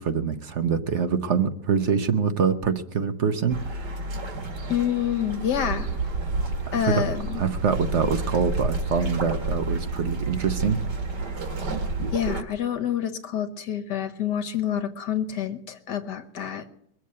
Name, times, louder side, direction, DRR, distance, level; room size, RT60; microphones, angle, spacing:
voice 1, 0.0-3.9 6.7-7.0 7.4-10.8, right 6 dB, 50° right, 9 dB, 1.0 m, -25 dB
sound 1, 3.5-12.4, right 3 dB, 75° right, 2.6 m, -30 dB
voice 2, 4.7-5.9 6.7-7.4 12.1-16.7, left 9 dB, 75° left, 9 dB, 1.8 m, -27 dB
21.5 x 7.6 x 8.4 m, 0.73 s
omnidirectional pair, 1.8 m